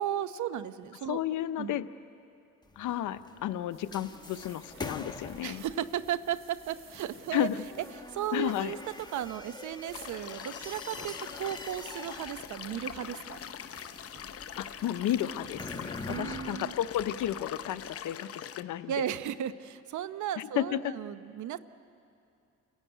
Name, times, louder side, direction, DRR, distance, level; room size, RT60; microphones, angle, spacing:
voice 1, 0.0-1.2 1.6-1.8 5.4-7.5 8.1-8.8 9.1-13.4 16.1-16.7 18.9-21.6, right 10 dB, 75° right, 13 dB, 0.9 m, -35 dB
voice 2, 1.1-1.9 2.8-5.6 7.3-7.6 8.3-8.7 14.6-18.3 18.6-18.9 20.4-20.8, left 12 dB, 85° left, 12 dB, 0.8 m, -32 dB
sound 1, 2.6-18.0, left 2 dB, 15° left, 1.2 m, -46 dB
sound 2, 3.7-16.2, right 3 dB, 40° right, 3.3 m, -56 dB
sound 3, 9.9-18.6, left 9 dB, 50° left, 0.8 m, -43 dB
29.0 x 15.5 x 9.3 m, 2.6 s
cardioid pair, 90°, 30 cm